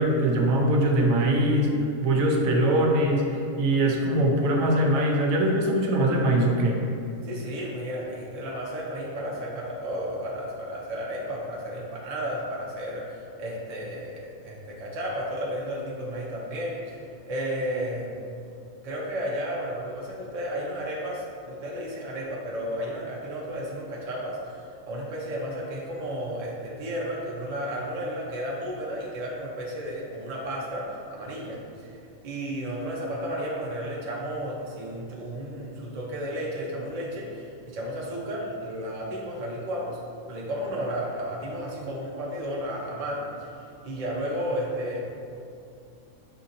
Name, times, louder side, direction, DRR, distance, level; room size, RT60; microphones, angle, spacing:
voice 1, 0.0-1.7 2.0-6.8, right 1 dB, 80° right, 1 dB, 1.0 m, -22 dB
voice 2, 7.2-17.0 17.3-18.1 18.8-24.6 24.9-32.0 32.2-40.0 40.3-43.5 43.8-45.0, equal, 40° right, -3 dB, 0.6 m, -33 dB
6.5 x 2.7 x 2.6 m, 2.4 s
omnidirectional pair, 1.4 m